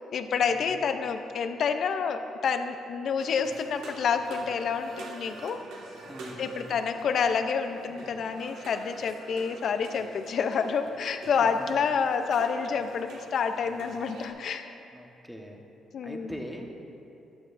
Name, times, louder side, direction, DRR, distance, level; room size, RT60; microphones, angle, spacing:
voice 1, 0.0-5.6 6.4-14.7 15.9-16.3, left 6 dB, 60° left, 8 dB, 0.7 m, -28 dB
sound 1, 3.2-14.3, right 2 dB, 85° right, 1.8 m, -46 dB
voice 2, 6.0-6.8 11.6-11.7 14.9-15.6 16.0-16.7, equal, ahead, 1 dB, 1.3 m, -42 dB
14.0 x 12.0 x 2.7 m, 2.8 s
cardioid pair, 90°, 0 cm